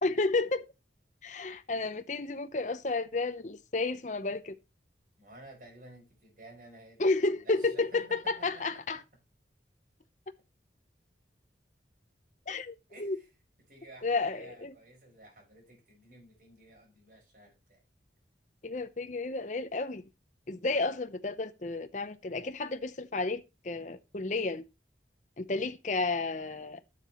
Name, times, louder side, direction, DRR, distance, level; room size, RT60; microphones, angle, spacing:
voice 1, 0.0-0.7 1.2-4.6 7.0-9.0 12.5-13.2 14.0-14.7 18.6-20.0 20.5-24.6 25.4-26.8, left 3 dB, 40° left, 0.7 m, -32 dB
voice 2, 5.2-9.0 12.9-13.3 13.7-17.8, right 1 dB, 45° right, 6.0 m, -54 dB
12.0 x 7.6 x 3.0 m
head